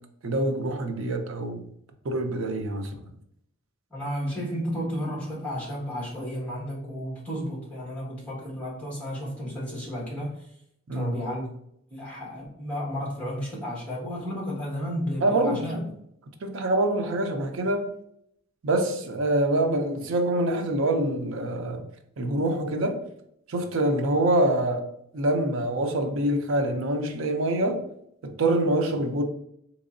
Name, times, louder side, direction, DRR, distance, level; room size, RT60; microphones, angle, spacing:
voice 1, 0.2-1.6 2.0-3.0 10.9-11.2 15.2-15.9 16.4-17.9 18.6-21.9 22.2-23.0 23.5-24.9 25.1-27.9 28.2-29.2, right 1 dB, 65° right, 0.5 m, -25 dB
voice 2, 3.9-10.5 10.9-11.5 11.9-15.8, equal, 5° left, 1.4 m, -32 dB
3.6 x 3.0 x 2.5 m
head